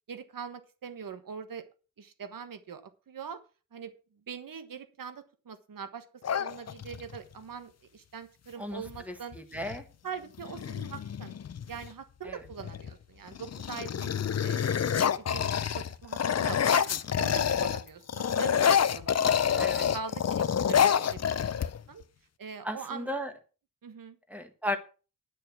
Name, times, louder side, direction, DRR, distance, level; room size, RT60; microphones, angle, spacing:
voice 1, 0.1-1.6 2.0-3.4 3.7-3.9 4.3-6.0 6.3-9.4 10.0-11.3 11.7-14.1 14.4-14.9 15.2-16.9 17.2-21.2 21.5-22.0 22.4-23.1 23.8-24.2, right 6 dB, 75° right, 10 dB, 1.4 m, -42 dB
sound 1, 6.2-7.2 8.9-9.0 9.3-9.8 10.4-11.9 12.5-12.9 13.3-17.8 18.1-22.0, left 8 dB, 50° left, 0.6 m, -27 dB
voice 2, 8.6-9.8 12.2-12.4 19.6-19.9 22.6-23.3 24.3-24.8, left 1 dB, 5° right, 6 dB, 1.6 m, -35 dB
10.5 x 6.7 x 6.0 m, 0.34 s
wide cardioid pair, 175°, 34 cm